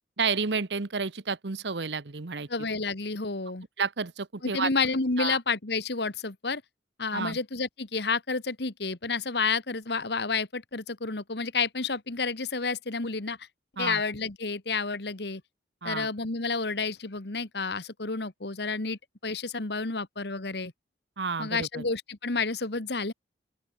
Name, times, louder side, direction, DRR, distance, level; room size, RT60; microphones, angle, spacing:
voice 1, 0.2-2.5 3.8-4.7 5.2-5.4 7.1-7.4 13.8-14.0 15.8-16.1 21.2-21.8, right 5 dB, 70° right, 1.0 m, -30 dB
voice 2, 2.5-3.6 4.4-6.6 7.0-13.4 13.8-15.4 15.8-20.7 21.4-23.1, left 4 dB, 65° left, 1.7 m, -30 dB
open air
head